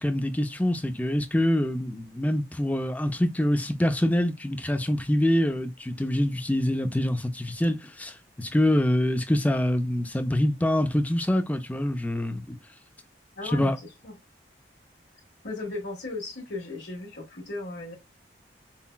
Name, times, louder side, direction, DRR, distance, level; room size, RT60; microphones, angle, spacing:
voice 1, 0.0-12.6 13.5-13.8, left 1 dB, 10° left, 0.4 m, -25 dB
voice 2, 13.3-14.2 15.4-17.9, left 2 dB, 80° left, 1.4 m, -36 dB
5.5 x 2.2 x 2.2 m
head